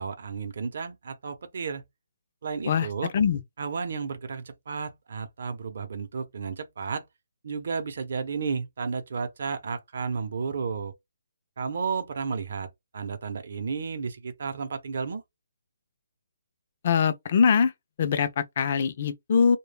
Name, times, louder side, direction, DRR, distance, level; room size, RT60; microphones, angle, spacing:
voice 1, 0.0-1.8 2.4-3.1 3.6-7.1 7.4-10.9 11.6-12.7 12.9-15.2, right 5 dB, 55° right, 0.6 m, -32 dB
voice 2, 16.8-17.7 18.0-19.6, left 6 dB, 40° left, 0.4 m, -22 dB
2.2 x 2.0 x 3.2 m
hypercardioid pair, 170°, 0 cm